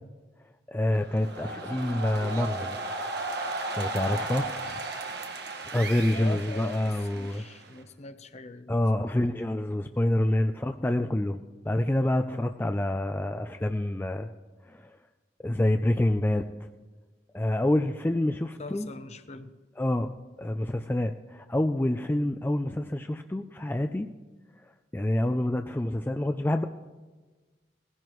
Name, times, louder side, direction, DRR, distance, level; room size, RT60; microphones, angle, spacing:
voice 1, 0.7-2.8 3.3-3.5 3.8-4.8 5.7-7.4 8.7-14.3 14.6-15.0 15.4-16.7 17.3-18.9 19.8-24.1 24.9-26.6, left 1 dB, 10° left, 6 dB, 0.3 m, -27 dB
sound 1, 0.9-7.8, right 2 dB, 65° right, 1.6 m, -35 dB
voice 2, 6.1-9.2 18.6-19.5 25.8-25.9, left 3 dB, 35° left, 10 dB, 0.7 m, -42 dB
19.5 x 15.5 x 3.1 m, 1.3 s
head